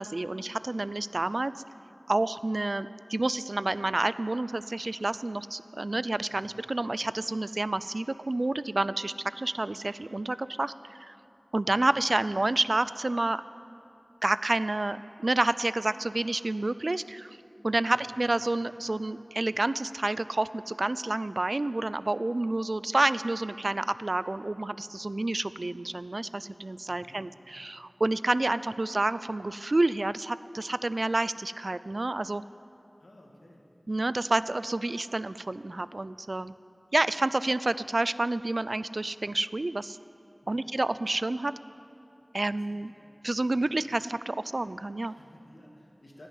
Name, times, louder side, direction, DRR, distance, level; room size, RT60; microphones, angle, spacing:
voice 1, 0.0-1.5 2.1-11.1 11.5-13.4 14.2-17.4 17.6-32.4 33.9-36.5 36.9-40.0 40.5-41.5 42.3-42.9 43.2-45.1, right 2 dB, 60° right, 15 dB, 0.3 m, -29 dB
voice 2, 11.7-12.0 17.9-18.5 26.9-27.3 33.0-33.6 40.4-40.7 42.5-43.1 43.3-43.7 45.0-46.3, left 1 dB, 75° left, -1 dB, 2.1 m, -55 dB
16.5 x 6.3 x 9.6 m, 2.7 s
wide cardioid pair, 50°, 0 cm